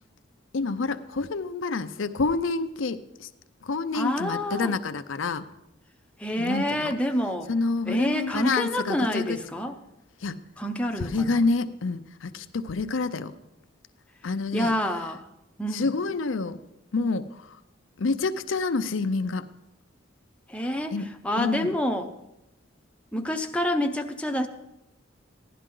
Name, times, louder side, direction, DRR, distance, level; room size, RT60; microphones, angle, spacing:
voice 1, 0.5-3.3 3.6-5.5 6.4-7.0 7.5-9.4 10.2-10.4 11.0-13.3 14.2-14.7 15.7-16.6 16.9-17.6 18.0-19.5 20.9-21.1 21.3-21.7, left 3 dB, 85° left, 10 dB, 0.6 m, -28 dB
voice 2, 3.9-4.8 6.2-7.5 7.9-9.7 10.6-11.4 14.5-15.2 15.6-15.9 20.5-20.9 21.2-22.1 23.1-24.5, left 1 dB, 5° left, 4 dB, 0.6 m, -27 dB
15.5 x 11.0 x 3.8 m, 0.90 s
head